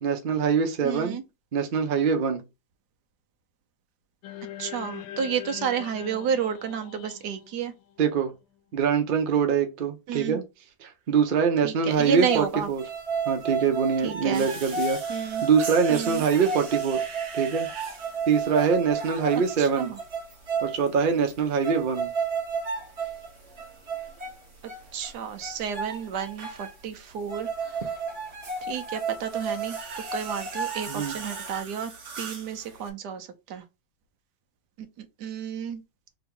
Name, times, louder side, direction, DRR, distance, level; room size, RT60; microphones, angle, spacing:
voice 1, 0.0-1.2 1.5-2.4 8.0-8.3 8.7-10.4 10.8-12.8 13.3-15.0 15.4-17.0 17.3-17.7 18.3-20.0 20.6-22.1 30.9-31.1, right 6 dB, 85° right, 0.4 m, -24 dB
voice 2, 0.8-1.2 4.6-7.7 10.1-10.4 11.6-12.7 14.0-14.5 15.1-15.5 15.9-16.2 19.6-20.0 24.9-27.8 28.7-29.8 30.1-31.9 32.2-33.6 34.8-35.8, right 7 dB, 70° right, 1.2 m, -31 dB
sound 1, 4.2-8.6, left 11 dB, 85° left, 1.3 m, -42 dB
sound 2, 12.0-12.4 12.8-20.9 21.3-21.4 21.6-23.3 23.6-24.4 24.7-25.1 25.4-26.7 27.3-31.6, right 5 dB, 20° right, 1.4 m, -32 dB
sound 3, 14.3-32.9, right 5 dB, 45° right, 1.1 m, -44 dB
3.5 x 2.9 x 3.6 m
omnidirectional pair, 2.1 m